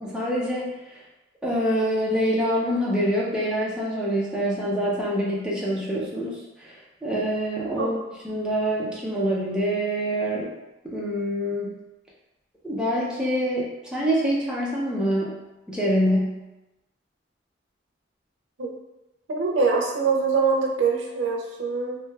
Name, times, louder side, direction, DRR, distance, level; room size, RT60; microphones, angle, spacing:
voice 1, 0.0-1.0 1.4-8.0 8.2-10.5 10.8-11.7 12.6-15.3 15.7-16.4, equal, 5° right, -6 dB, 0.4 m, -25 dB
voice 2, 19.3-22.0, right 4 dB, 80° right, -1 dB, 0.5 m, -23 dB
2.6 x 2.2 x 3.2 m, 1.0 s
head